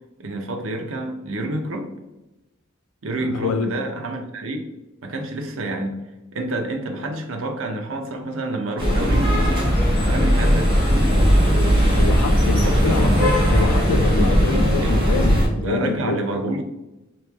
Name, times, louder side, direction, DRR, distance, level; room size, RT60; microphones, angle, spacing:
voice 1, 0.2-1.9 3.0-4.7 5.0-6.0 6.3-9.6 10.0-10.7 12.6-13.1 14.8-15.0 15.6-16.6, right 2 dB, 65° right, 0.6 m, -28 dB
voice 2, 3.2-3.8 11.9-16.2, left 4 dB, 80° left, 0.4 m, -26 dB
sound 1, 8.8-15.5, equal, 25° right, 1.1 m, -18 dB
3.1 x 2.9 x 3.4 m
head